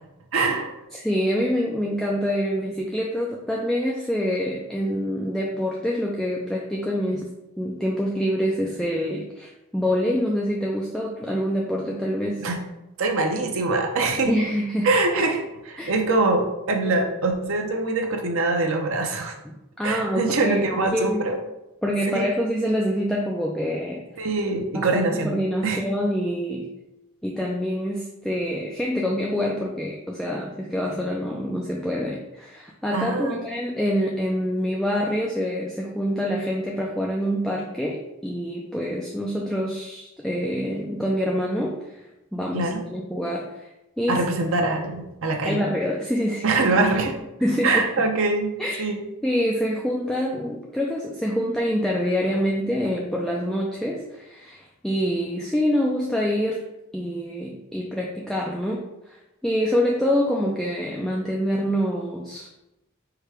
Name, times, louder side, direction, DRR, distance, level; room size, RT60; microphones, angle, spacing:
voice 1, 0.3-0.7 12.4-12.6 13.0-14.3 14.8-19.4 19.8-21.4 22.1-22.2 24.2-25.3 25.6-25.8 32.9-33.4 42.5-42.8 44.1-45.6 46.4-47.2 47.6-48.5 48.8-49.0, right 3 dB, 75° right, 2 dB, 0.7 m, -23 dB
voice 2, 0.9-7.2 7.6-12.5 14.3-14.9 15.8-15.9 19.5-21.2 21.8-24.3 24.7-26.7 27.2-42.1 42.3-43.7 44.0-44.3 45.4-46.6 47.4-47.8 48.6-48.9 49.2-56.6 56.9-62.5, equal, ahead, -2 dB, 0.3 m, -26 dB
4.7 x 2.2 x 4.7 m, 0.93 s
head